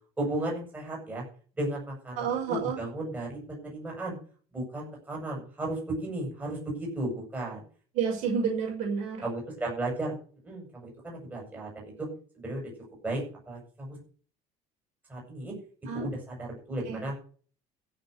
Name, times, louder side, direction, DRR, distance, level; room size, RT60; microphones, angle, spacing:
voice 1, 0.2-1.2 1.6-4.2 4.5-7.6 9.2-10.1 10.4-12.1 12.3-12.6 13.0-13.2 13.5-14.0 15.1-15.5 15.9-17.2, right 1 dB, 10° right, -2 dB, 7.8 m, -34 dB
voice 2, 2.2-2.8 7.9-9.3 15.9-16.1 16.8-17.0, right 6 dB, 60° right, 1 dB, 5.9 m, -30 dB
15.5 x 7.2 x 6.7 m, 0.41 s
cardioid pair, 170°, 14 cm